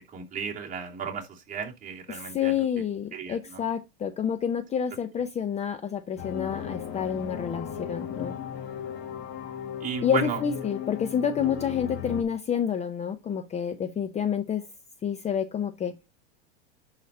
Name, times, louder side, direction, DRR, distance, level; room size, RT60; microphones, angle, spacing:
voice 1, 0.1-2.6 3.1-3.6 9.8-10.4, right 6 dB, 25° right, 2.8 m, -34 dB
voice 2, 2.1-8.3 10.0-14.6 15.0-15.9, left 8 dB, 20° left, 0.7 m, -29 dB
sound 1, 6.2-12.2, left 9 dB, 45° left, 2.1 m, -36 dB
11.0 x 4.1 x 4.2 m
supercardioid pair, 125°, 31 cm